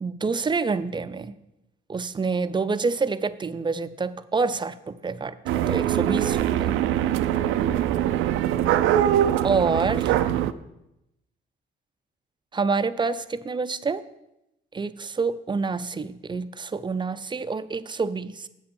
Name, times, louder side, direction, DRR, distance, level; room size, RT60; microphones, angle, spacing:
voice 1, 0.0-1.3 1.9-6.8 9.4-10.2 12.5-14.0 14.7-18.5, right 4 dB, 25° right, 13 dB, 0.5 m, -27 dB
sound 1, 5.5-10.5, right 11 dB, 90° right, 0.4 m, -23 dB
7.9 x 5.2 x 7.0 m, 0.88 s
cardioid pair, 90°, 20 cm